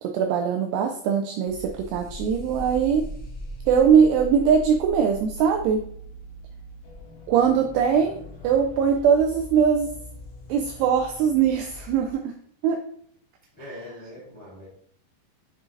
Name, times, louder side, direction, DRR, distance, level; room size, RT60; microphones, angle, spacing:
voice 1, 0.0-3.0 3.7-5.8 7.3-8.2 8.4-9.9 10.5-12.2 12.6-12.8, right 7 dB, 85° right, 3 dB, 2.4 m, -21 dB
sound 1, 1.5-12.1, equal, 55° left, 2.8 m, -40 dB
voice 2, 7.9-8.4 13.5-14.7, left 1 dB, 15° left, -6 dB, 1.6 m, -43 dB
10.0 x 3.9 x 2.5 m, 0.62 s
omnidirectional pair, 5.4 m